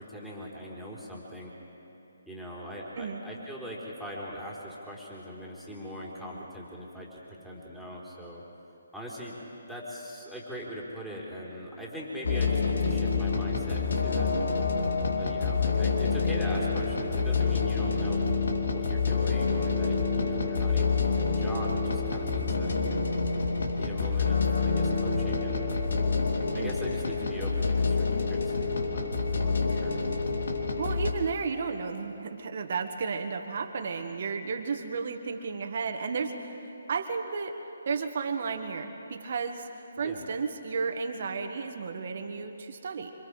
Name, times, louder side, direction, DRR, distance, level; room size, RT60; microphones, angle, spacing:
voice 1, 0.0-1.5 2.3-8.4 8.9-9.4 9.7-14.3 15.1-18.3 18.6-23.1 23.7-25.8 26.5-30.0 40.0-40.2, equal, ahead, -6 dB, 3.9 m, -41 dB
sound 1, 12.2-31.1, left 4 dB, 70° left, 2.3 m, -27 dB
voice 2, 30.8-36.5 36.9-37.6 37.8-39.7 40.0-43.1, right 5 dB, 50° right, 5 dB, 1.6 m, -33 dB
26.5 x 25.5 x 5.0 m, 2.9 s
figure-of-eight pair, 145°, 0 cm